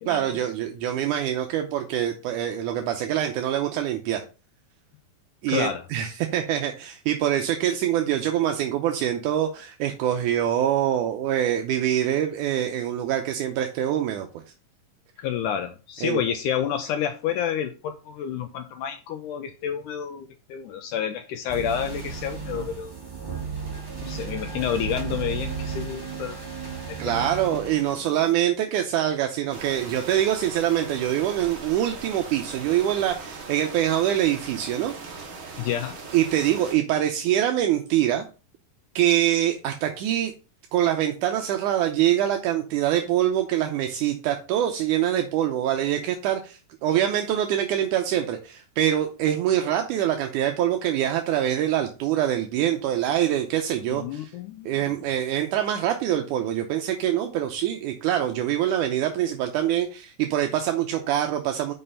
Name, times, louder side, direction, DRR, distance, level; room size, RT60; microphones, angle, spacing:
voice 1, 0.1-4.2 5.4-14.4 16.0-16.2 27.0-34.9 36.1-38.3 39.0-40.3 40.7-54.3 54.7-61.7, right 11 dB, 75° right, 1.9 m, -24 dB
voice 2, 5.5-5.8 15.2-22.9 24.0-26.4 26.9-27.3 35.6-36.0 53.9-54.9, left 9 dB, 85° left, 1.8 m, -29 dB
sound 1, 21.5-28.3, right 6 dB, 15° right, 0.9 m, -34 dB
sound 2, 29.5-36.7, right 4 dB, 50° right, 1.5 m, -40 dB
5.9 x 5.6 x 5.4 m
omnidirectional pair, 4.3 m